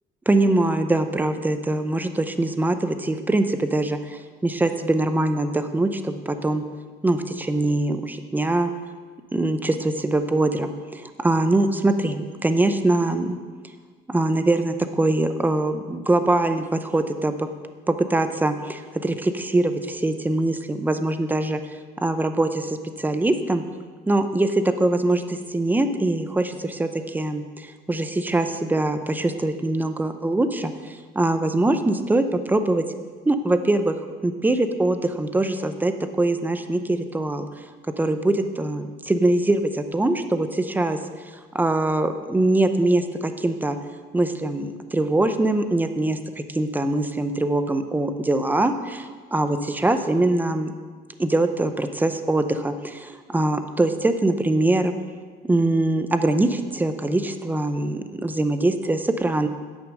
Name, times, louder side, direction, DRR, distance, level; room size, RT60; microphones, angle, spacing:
voice 1, 0.3-6.6 7.0-8.7 9.3-13.4 14.1-17.5 17.9-21.6 22.0-23.6 24.1-25.2 25.5-32.8 33.3-33.9 34.2-37.6 38.0-41.0 41.5-43.8 44.1-50.7 51.2-54.9 55.4-59.5, right 2 dB, 10° right, 8 dB, 0.7 m, -23 dB
8.8 x 6.4 x 6.3 m, 1.5 s
cardioid pair, 110°, 17 cm